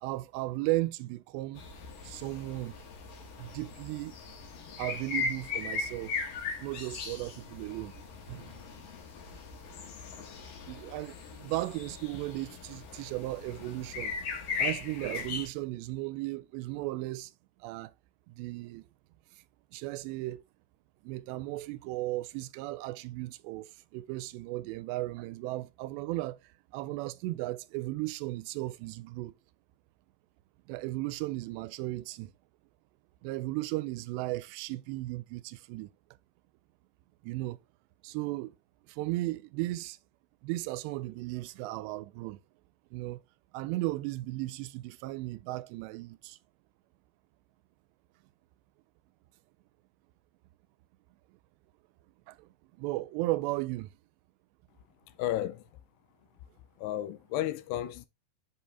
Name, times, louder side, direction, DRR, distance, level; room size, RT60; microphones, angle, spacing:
voice 1, 0.0-1.6 2.0-2.8 3.4-4.2 4.8-6.2 6.6-7.9 8.3-8.5 10.7-14.1 14.6-17.3 17.6-17.9 18.3-18.9 19.7-20.4 21.0-26.4 26.7-29.3 30.7-32.3 33.2-35.9 37.2-37.6 38.0-38.6 38.9-40.0 40.4-42.4 42.9-43.2 43.5-46.4 52.3-52.5 52.8-53.9, right 18 dB, 85° right, 2.7 m, -35 dB
sound 1, 1.6-15.5, left 5 dB, 60° left, 2.9 m, -38 dB
voice 2, 55.2-55.6 56.8-58.1, left 13 dB, 80° left, 2.6 m, -32 dB
7.7 x 4.5 x 3.4 m
omnidirectional pair, 4.9 m